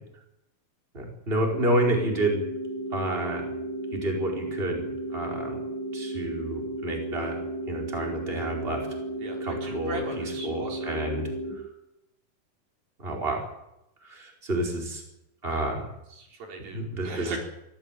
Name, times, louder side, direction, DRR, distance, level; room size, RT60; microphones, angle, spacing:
voice 1, 0.9-2.4 2.9-3.4 3.9-5.6 5.9-7.4 7.7-8.9 9.4-11.6 13.0-13.4 14.0-15.0 15.4-15.9 16.7-17.4, right 1 dB, 15° right, 0 dB, 5.0 m, -29 dB
sound 1, 1.5-11.5, right 1 dB, 50° right, 6.3 m, -34 dB
voice 2, 9.2-11.0 16.1-17.4, right 3 dB, 80° right, 1 dB, 6.2 m, -39 dB
23.5 x 16.0 x 9.1 m, 0.85 s
omnidirectional pair, 4.1 m